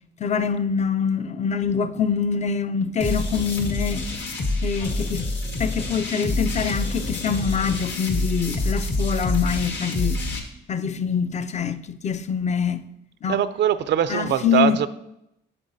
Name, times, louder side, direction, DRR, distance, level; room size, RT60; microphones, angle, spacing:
voice 1, 0.2-4.1 4.6-5.3 5.6-10.2 10.7-12.8 13.2-13.4 14.1-14.8, left 6 dB, 35° left, 0.5 m, -25 dB
sound 1, 3.0-10.4, left 2 dB, 60° left, 1.6 m, -27 dB
voice 2, 13.3-14.9, right 10 dB, 65° right, 0.4 m, -22 dB
8.7 x 7.2 x 2.7 m
cardioid pair, 90°, 20 cm